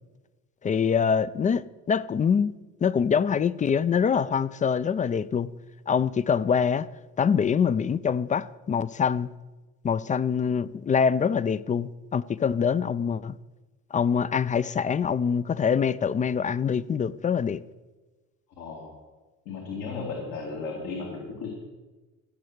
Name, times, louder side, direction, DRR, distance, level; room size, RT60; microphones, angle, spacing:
voice 1, 0.6-2.5 2.8-5.5 5.9-6.9 7.2-9.3 9.8-13.4 13.9-17.6, left 6 dB, 25° left, 0.4 m, -24 dB
voice 2, 18.6-18.9 19.5-21.5, left 4 dB, 80° left, 2.4 m, -35 dB
15.5 x 6.2 x 6.6 m
supercardioid pair, 95°, 33 cm